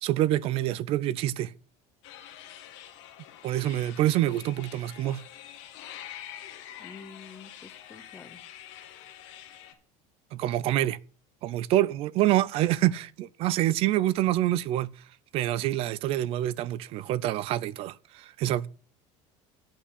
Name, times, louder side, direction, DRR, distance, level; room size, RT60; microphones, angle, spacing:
voice 1, 0.0-1.5 3.4-5.2 10.3-11.0 11.4-14.9 15.3-18.7, right 14 dB, 40° right, 0.4 m, -26 dB
sound 1, 2.0-9.7, left 11 dB, 85° left, 1.6 m, -46 dB
voice 2, 6.8-8.4, left 5 dB, 15° left, 0.7 m, -48 dB
8.6 x 5.7 x 8.0 m
cardioid pair, 165°, 15 cm